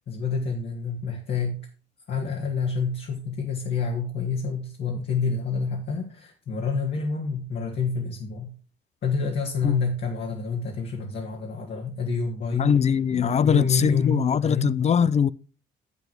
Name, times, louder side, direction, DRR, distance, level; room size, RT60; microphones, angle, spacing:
voice 1, 0.0-1.6 2.1-8.5 9.0-12.7 13.1-14.7, left 5 dB, 60° left, 1.7 m, -28 dB
voice 2, 12.5-15.3, left 7 dB, 35° left, 0.4 m, -21 dB
7.8 x 7.1 x 4.5 m
cardioid pair, 90°, 20 cm